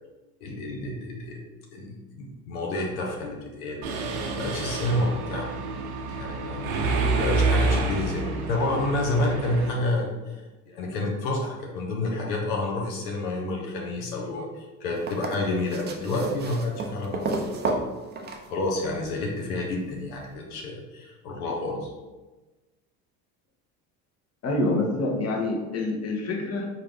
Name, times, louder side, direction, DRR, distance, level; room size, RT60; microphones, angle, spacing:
voice 1, 0.4-1.4 1.7-3.8 4.1-5.5 6.2-10.1 10.7-17.7 18.5-21.9, left 2 dB, 80° left, -1 dB, 0.9 m, -29 dB
Mechanisms, 3.8-9.7, right 3 dB, 70° right, 0.8 m, -28 dB
sound 1, 14.9-19.1 20.3-20.4, right 3 dB, 25° right, 0.5 m, -32 dB
voice 2, 24.4-26.7, left 2 dB, 35° left, 0 dB, 1.0 m, -26 dB
4.0 x 2.9 x 3.4 m, 1.2 s
hypercardioid pair, 80°, 44 cm